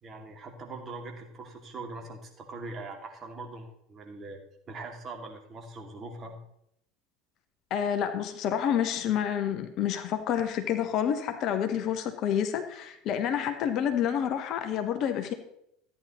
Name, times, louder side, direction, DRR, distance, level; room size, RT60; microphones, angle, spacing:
voice 1, 0.0-4.4 4.7-6.4, right 3 dB, 35° right, 2 dB, 2.3 m, -42 dB
voice 2, 7.7-15.3, left 9 dB, 50° left, 8 dB, 1.1 m, -28 dB
14.0 x 9.4 x 3.1 m, 0.75 s
figure-of-eight pair, 70°, 0 cm